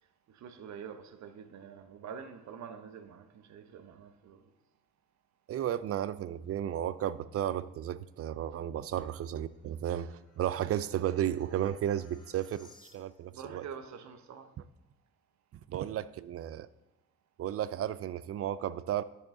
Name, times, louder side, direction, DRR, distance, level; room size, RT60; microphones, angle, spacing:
voice 1, 0.3-4.4 13.3-14.5, right 7 dB, 65° right, 0.9 m, -46 dB
voice 2, 5.5-13.6 15.7-16.7 17.4-19.0, right 11 dB, 50° right, 0.4 m, -33 dB
sound 1, 8.4-13.4, left 3 dB, 80° left, 2.8 m, -63 dB
10.0 x 6.4 x 3.7 m
cardioid pair, 90°, 30 cm